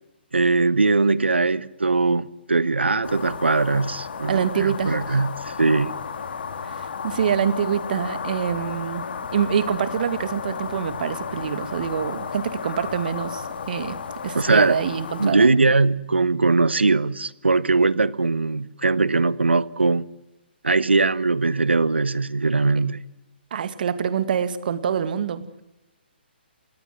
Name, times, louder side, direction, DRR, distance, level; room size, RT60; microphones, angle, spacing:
voice 1, 0.3-5.9 14.3-14.8 15.2-20.0 20.6-23.0, right 3 dB, 85° right, 1.0 m, -20 dB
sound 1, 3.0-15.3, left 6 dB, 60° left, 2.6 m, -33 dB
voice 2, 4.3-5.2 6.6-9.0 9.3-14.0 14.2-15.6 23.5-25.5, right 8 dB, 55° right, 2.0 m, -26 dB
29.5 x 18.0 x 8.0 m
figure-of-eight pair, 135°, 6 cm